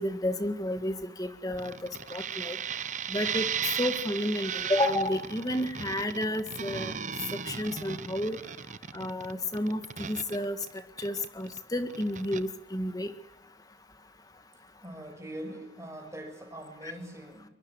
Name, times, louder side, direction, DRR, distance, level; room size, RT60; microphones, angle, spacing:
voice 1, 0.0-2.6 3.1-3.5 3.8-6.9 7.5-8.4 8.9-10.6 11.0-13.1 16.8-16.9, left 1 dB, 20° left, 8 dB, 1.9 m, -31 dB
sound 1, 1.6-11.6 11.9-12.4, right 7 dB, 40° right, 0.9 m, -36 dB
voice 2, 14.8-17.5, right 1 dB, 15° right, 4 dB, 6.1 m, -42 dB
23.5 x 22.5 x 8.1 m, 0.93 s
head